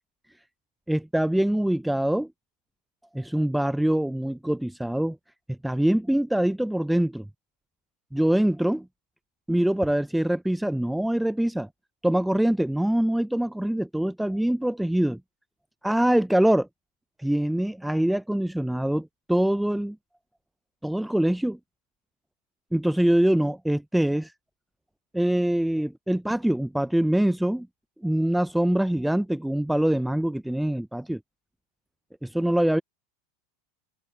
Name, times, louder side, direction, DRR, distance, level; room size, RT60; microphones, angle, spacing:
voice 1, 0.9-2.3 3.1-5.2 5.5-7.2 8.1-8.9 9.5-11.7 12.0-15.2 15.8-16.7 17.2-20.0 20.8-21.6 22.7-24.3 25.1-27.7 28.0-31.2 32.2-32.8, right 1 dB, 5° right, 0.3 m, -24 dB
hypercardioid pair, 110°, 0 cm